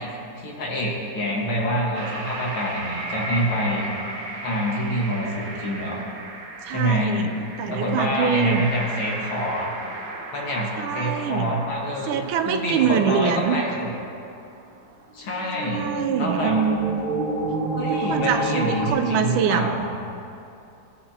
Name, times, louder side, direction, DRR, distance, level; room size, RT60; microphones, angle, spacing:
voice 1, 0.0-3.9 4.4-6.0 6.7-7.2 7.7-9.7 10.3-12.2 12.5-13.9 15.1-15.9 16.2-16.6 17.7-19.9, equal, 75° left, -3 dB, 2.4 m, -26 dB
sound 1, 1.9-13.7 14.1-14.2 15.1-18.9, right 3 dB, 60° right, 1.4 m, -32 dB
voice 2, 6.7-7.3 7.6-8.6 10.8-11.5 12.1-13.7 15.6-17.0 17.9-19.7, right 7 dB, 85° right, 7 dB, 1.4 m, -24 dB
16.0 x 7.6 x 2.8 m, 2.6 s
omnidirectional pair, 2.2 m